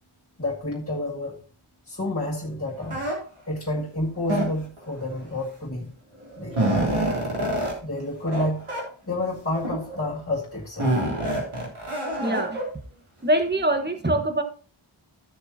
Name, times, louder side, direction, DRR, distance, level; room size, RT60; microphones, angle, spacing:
voice 1, 0.4-1.4 1.9-3.0 3.5-5.9 6.3-6.7 7.8-8.7 9.1-10.9, left 1 dB, 25° left, -6 dB, 2.3 m, -29 dB
sound 1, 2.9-3.1 4.2-4.8 5.8-5.9 6.2-7.7 8.3-8.4 8.7-8.8 9.5-10.0 10.8-12.6, right 1 dB, 80° right, 3.5 m, -26 dB
voice 2, 12.2-12.6 13.2-14.4, right 1 dB, 20° right, 5 dB, 1.5 m, -23 dB
14.0 x 6.8 x 2.9 m, 0.39 s
wide cardioid pair, 40°, 50 cm